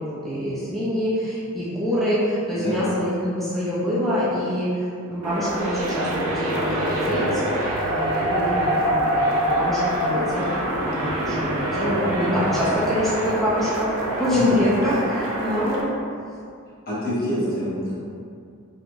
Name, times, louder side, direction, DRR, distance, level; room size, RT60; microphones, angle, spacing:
voice 1, 0.0-13.9 14.2-15.9 17.2-17.7, equal, ahead, -11 dB, 0.4 m, -25 dB
sound 1, 5.2-15.8, right 1 dB, 80° right, 0.4 m, -25 dB
voice 2, 16.9-17.9, left 1 dB, 45° left, -10 dB, 0.8 m, -27 dB
2.9 x 2.3 x 2.6 m, 2.3 s
head